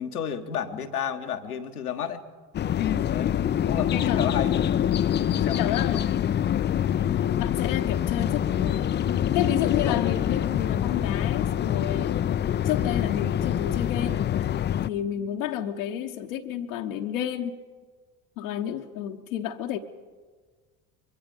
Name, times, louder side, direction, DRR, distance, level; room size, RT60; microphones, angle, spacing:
voice 1, 0.0-2.2 3.1-3.3 3.7-4.5 5.3-6.0 9.8-9.9, left 8 dB, 85° left, 5 dB, 1.4 m, -31 dB
sound 1, 2.5-14.9, left 10 dB, 25° left, 0.5 m, -25 dB
voice 2, 2.8-3.2 3.9-4.3 5.1-6.0 7.0-8.9 9.3-12.2 12.6-14.5 14.9-17.6 18.4-19.8, left 10 dB, 65° left, 1 dB, 1.2 m, -31 dB
24.0 x 22.5 x 5.3 m, 1.5 s
figure-of-eight pair, 65°, 44 cm